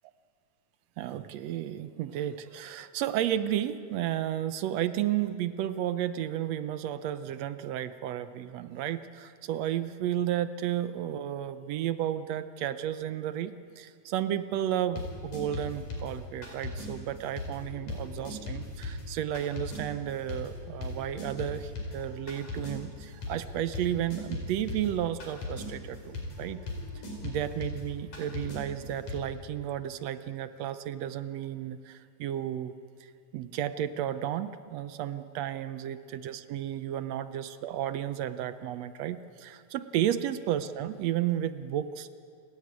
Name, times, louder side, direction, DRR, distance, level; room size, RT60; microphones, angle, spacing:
voice 1, 1.0-26.6 27.2-32.7 33.3-42.1, right 11 dB, 70° right, 12 dB, 1.7 m, -33 dB
sound 1, 14.9-16.9 17.4-29.1, left 2 dB, 85° left, 6.1 m, -39 dB
29.5 x 14.0 x 9.5 m, 2.4 s
omnidirectional pair, 3.5 m